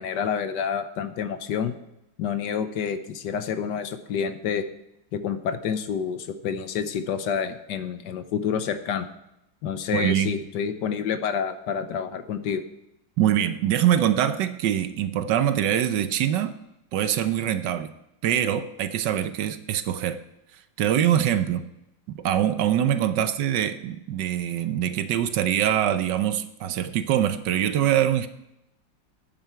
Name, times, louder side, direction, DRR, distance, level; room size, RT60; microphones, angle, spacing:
voice 1, 0.0-1.8 2.2-4.6 5.1-9.1 9.6-12.6 23.2-23.3, left 7 dB, 70° left, 10 dB, 1.3 m, -28 dB
voice 2, 9.9-10.4 13.2-16.5 16.9-17.9 18.2-20.2 20.8-21.6 22.1-28.3, right 10 dB, 70° right, 10 dB, 1.3 m, -23 dB
11.0 x 9.1 x 4.5 m, 0.85 s
omnidirectional pair, 2.0 m